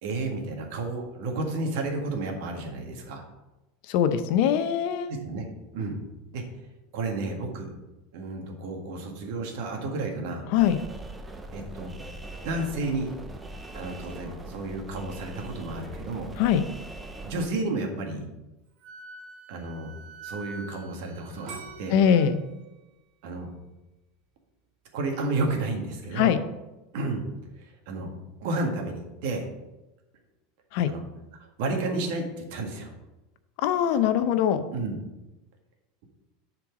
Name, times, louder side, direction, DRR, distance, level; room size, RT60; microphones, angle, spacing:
voice 1, 0.0-3.2 5.1-5.4 5.7-6.0 6.3-6.4 6.9-7.7 8.1-10.4 11.5-11.9 12.4-13.1 13.7-16.3 17.2-18.3 19.5-19.9 20.2-22.0 23.2-23.5 24.9-26.4 26.9-27.2 27.6-28.1 28.4-29.5 30.9-31.0 31.4-32.9 34.7-35.0, right 2 dB, 65° right, 3 dB, 1.7 m, -31 dB
voice 2, 3.9-5.2 10.5-10.8 16.4-16.6 21.9-22.4 26.2-26.4 30.7-30.9 33.6-34.6, left 9 dB, 55° left, 11 dB, 0.6 m, -22 dB
sound 1, 10.6-17.5, right 1 dB, 10° right, 0.6 m, -41 dB
Wind instrument woodwind instrument, 18.8-22.3, right 3 dB, 80° right, 1.3 m, -46 dB
sound 2, 21.5-24.4 24.9-25.4, right 5 dB, 45° right, 1.6 m, -46 dB
7.7 x 4.5 x 6.0 m, 1.0 s
supercardioid pair, 150°, 0 cm